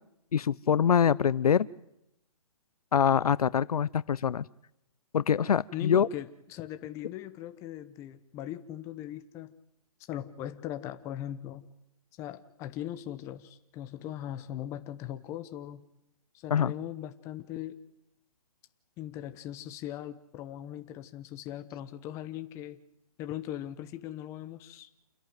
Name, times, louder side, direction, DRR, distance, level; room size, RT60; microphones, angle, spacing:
voice 1, 0.3-1.7 2.9-4.5 5.1-6.1 16.5-16.7, left 8 dB, 75° left, 20 dB, 0.7 m, -24 dB
voice 2, 5.7-9.5 10.1-11.7 12.2-15.9 16.3-17.8 19.0-22.8 23.2-24.9, left 12 dB, 15° left, 10 dB, 0.8 m, -39 dB
28.5 x 11.0 x 9.3 m, 0.82 s
hypercardioid pair, 160°, 19 cm